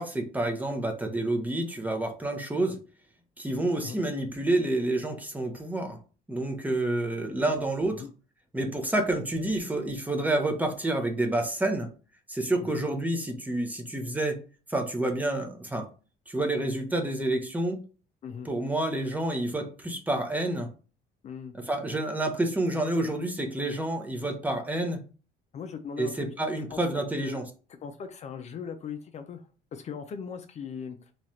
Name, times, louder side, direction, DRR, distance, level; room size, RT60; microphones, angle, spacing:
voice 1, 0.0-2.8 3.4-6.0 6.3-8.0 8.5-11.9 12.3-14.4 14.7-15.9 16.3-17.8 18.5-20.7 21.6-25.0 26.0-27.5, right 1 dB, 10° right, 5 dB, 0.7 m, -29 dB
voice 2, 21.2-21.5 25.5-26.3 26.7-26.8 27.1-27.4 27.7-31.1, left 6 dB, 40° left, 7 dB, 0.4 m, -39 dB
3.1 x 2.4 x 4.1 m, 0.37 s
cardioid pair, 110°, 17 cm